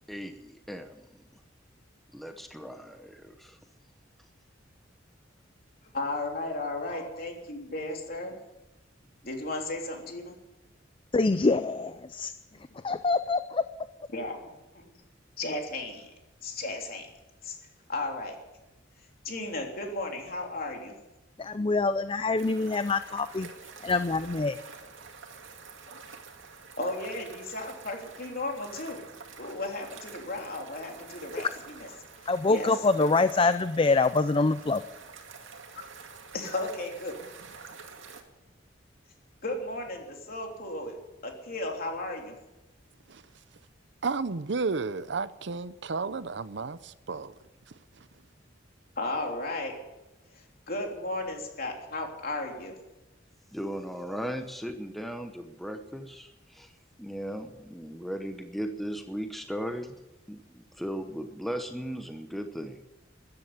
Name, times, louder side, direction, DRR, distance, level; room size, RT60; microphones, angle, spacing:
voice 1, 0.1-1.2 2.1-3.6 53.5-56.7 57.0-60.0 60.3-62.8, equal, ahead, 0.9 m, -37 dB
voice 2, 5.9-8.4 9.2-10.3 14.1-14.9 15.4-16.1 16.4-17.1 17.4-17.6 17.9-18.3 19.2-20.9 26.8-29.0 29.4-31.9 32.2-32.8 36.3-37.1 39.4-41.0 41.2-42.4 49.0-49.7 50.3-52.7, left 2 dB, 50° left, 3.4 m, -35 dB
voice 3, 11.1-12.3 12.8-13.7 21.4-23.5 23.8-24.6 32.3-34.8, left 3 dB, 25° left, 0.5 m, -25 dB
sound 1, 22.4-38.2, right 5 dB, 85° right, 2.2 m, -48 dB
voice 4, 44.0-47.3 47.7-48.1, right 4 dB, 65° right, 0.7 m, -33 dB
14.0 x 11.0 x 9.6 m
head